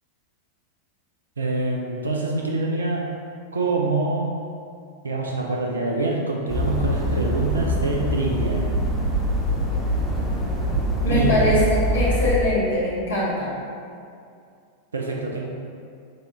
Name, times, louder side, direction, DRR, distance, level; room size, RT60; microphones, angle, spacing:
voice 1, 1.4-3.1 3.5-4.3 5.0-8.6 11.1-11.5 14.9-15.5, right 2 dB, 75° right, -1 dB, 0.4 m, -25 dB
sound 1, 6.5-12.4, right 1 dB, 10° right, 0.8 m, -24 dB
voice 2, 11.0-13.5, left 1 dB, 70° left, -8 dB, 1.4 m, -22 dB
6.3 x 2.3 x 2.7 m, 2.4 s
figure-of-eight pair, 90°, 0 cm